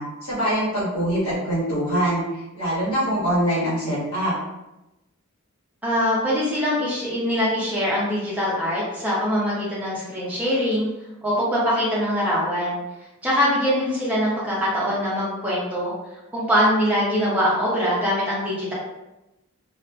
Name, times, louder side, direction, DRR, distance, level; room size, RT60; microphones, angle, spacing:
voice 1, 0.0-2.2 2.6-4.3, right 1 dB, 90° left, -8 dB, 1.2 m, -23 dB
voice 2, 5.8-10.9 11.2-12.8 13.2-15.9 16.3-18.7, equal, 5° right, -7 dB, 0.7 m, -23 dB
2.6 x 2.5 x 2.3 m, 0.97 s
head